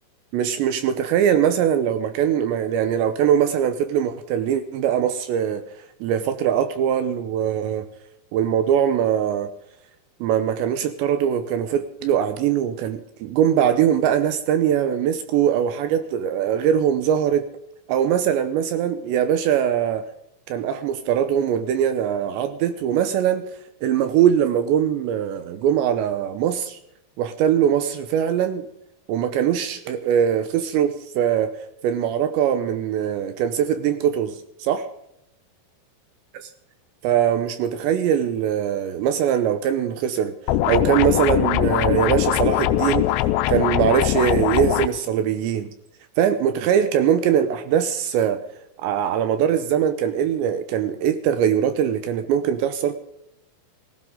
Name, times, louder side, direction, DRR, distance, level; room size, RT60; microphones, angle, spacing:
voice 1, 0.3-5.6 6.0-7.9 8.3-9.5 10.2-17.4 17.9-20.1 20.5-23.5 23.8-26.8 27.2-28.7 29.1-31.5 31.8-34.9 37.0-40.3 40.7-43.1 43.5-45.7 46.2-48.4 48.8-53.0, right 9 dB, 75° right, 2.8 m, -21 dB
sound 1, 40.5-44.9, left 14 dB, 80° left, 2.7 m, -21 dB
19.0 x 15.5 x 3.8 m
omnidirectional pair, 5.6 m